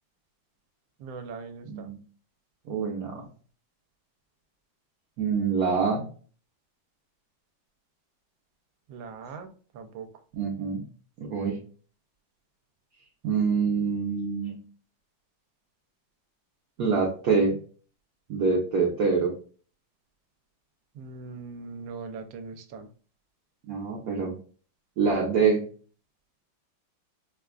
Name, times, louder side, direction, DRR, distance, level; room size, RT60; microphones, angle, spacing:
voice 1, 1.0-1.9 8.9-10.1 20.9-22.9, right 4 dB, 80° right, 7 dB, 1.4 m, -41 dB
voice 2, 1.7-2.0 2.7-3.3 5.2-6.1 10.3-10.8 11.2-11.6 13.2-14.6 16.8-17.6 18.3-19.3 23.7-24.3 25.0-25.6, right 5 dB, 60° right, -2 dB, 1.0 m, -25 dB
4.9 x 2.3 x 2.3 m, 0.41 s
omnidirectional pair, 2.1 m